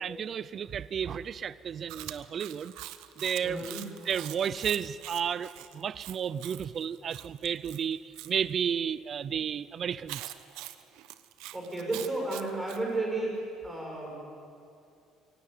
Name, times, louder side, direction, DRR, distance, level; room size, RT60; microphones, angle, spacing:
voice 1, 0.0-2.7 3.2-3.7 4.1-10.3, right 8 dB, 30° right, 17 dB, 0.5 m, -32 dB
Chewing mastication, 1.9-8.3 10.1-12.8, right 15 dB, 85° right, 1.0 m, -44 dB
voice 2, 3.4-3.9 11.5-14.2, right 2 dB, 10° right, -1 dB, 6.4 m, -33 dB
23.5 x 17.5 x 9.8 m, 2.5 s
cardioid pair, 175°, 0 cm